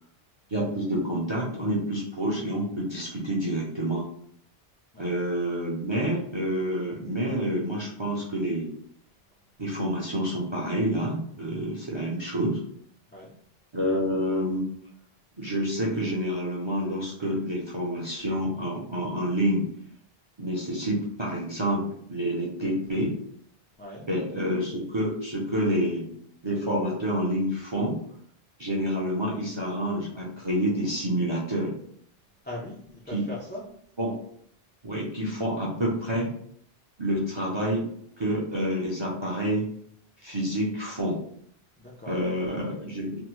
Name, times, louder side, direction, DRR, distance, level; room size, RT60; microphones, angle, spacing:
voice 1, 0.5-4.1 5.0-8.7 9.6-12.6 13.7-14.7 15.4-19.7 20.4-23.1 24.0-26.1 26.4-28.0 28.6-31.7 33.1-33.3 34.0-34.2 34.8-36.3 37.0-37.9 38.2-39.7 40.2-41.2 42.1-43.2, equal, 35° right, -4 dB, 0.5 m, -28 dB
voice 2, 32.4-33.6 41.8-42.2, left 1 dB, 20° left, -6 dB, 0.3 m, -39 dB
3.3 x 2.0 x 3.0 m, 0.65 s
omnidirectional pair, 1.0 m